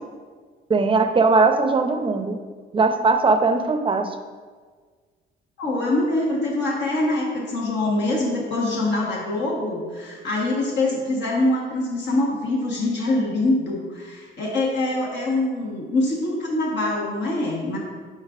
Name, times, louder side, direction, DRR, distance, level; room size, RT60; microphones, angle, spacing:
voice 1, 0.7-2.4 2.7-4.2, right 3 dB, 25° right, 7 dB, 0.6 m, -19 dB
voice 2, 5.6-17.8, left 2 dB, 65° left, -3 dB, 1.3 m, -24 dB
9.8 x 3.9 x 2.5 m, 1.5 s
cardioid pair, 90°, 20 cm